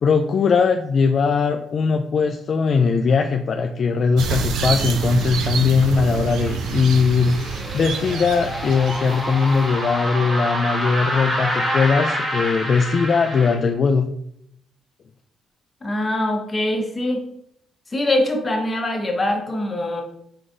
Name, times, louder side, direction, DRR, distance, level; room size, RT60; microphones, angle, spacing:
voice 1, 0.0-14.1, left 5 dB, 50° left, 5 dB, 0.3 m, -20 dB
sound 1, 4.2-9.9, right 5 dB, 80° right, 0.5 m, -27 dB
sound 2, 5.8-13.5, equal, 20° right, 1.3 m, -27 dB
voice 2, 15.8-17.3 17.9-20.0, left 1 dB, 25° left, 2 dB, 1.0 m, -23 dB
4.6 x 3.9 x 2.5 m, 0.71 s
cardioid pair, 90°, 0 cm